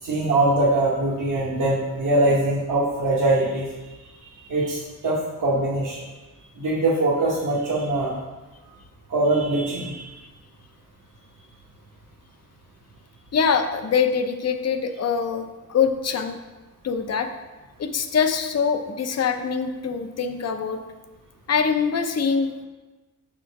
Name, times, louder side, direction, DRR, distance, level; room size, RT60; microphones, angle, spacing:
voice 1, 0.0-3.7 4.5-6.0 6.6-8.2 9.1-10.1, right 2 dB, 60° right, -6 dB, 1.0 m, -22 dB
voice 2, 13.3-16.4 16.8-17.3 17.8-20.8 21.5-22.6, left 6 dB, 50° left, 7 dB, 0.5 m, -24 dB
6.1 x 3.7 x 4.6 m, 1.2 s
wide cardioid pair, 135°, 34 cm